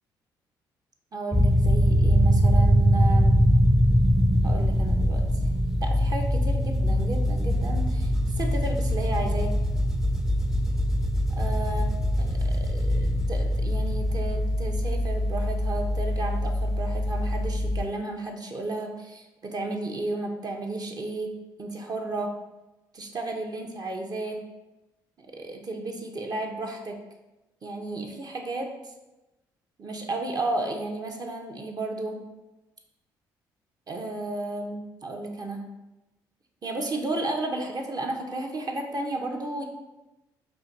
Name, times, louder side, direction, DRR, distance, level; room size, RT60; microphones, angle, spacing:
voice 1, 1.1-3.4 4.4-5.2 5.8-9.5 11.3-21.3 21.6-22.3 22.9-24.4 25.2-27.0 27.6-28.7 29.8-32.2 33.9-35.6 36.6-39.6, right 2 dB, 40° right, 2 dB, 0.8 m, -33 dB
sound 1, 1.3-17.8, equal, 5° right, 0.5 m, -23 dB
4.9 x 2.5 x 4.0 m, 1.0 s
hypercardioid pair, 50°, 10 cm